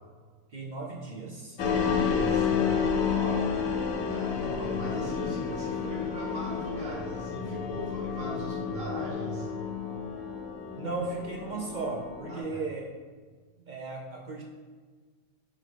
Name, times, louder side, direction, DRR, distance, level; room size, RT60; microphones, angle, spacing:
voice 1, 0.5-1.6 3.0-3.6 10.8-12.9 13.7-14.4, right 3 dB, 45° right, -1 dB, 0.6 m, -36 dB
sound 1, 1.6-12.4, left 6 dB, 85° left, 1.2 m, -30 dB
voice 2, 1.6-2.5 4.1-9.5 12.3-12.6, right 1 dB, 70° right, -5 dB, 1.7 m, -39 dB
7.4 x 2.6 x 4.9 m, 1.5 s
omnidirectional pair, 1.4 m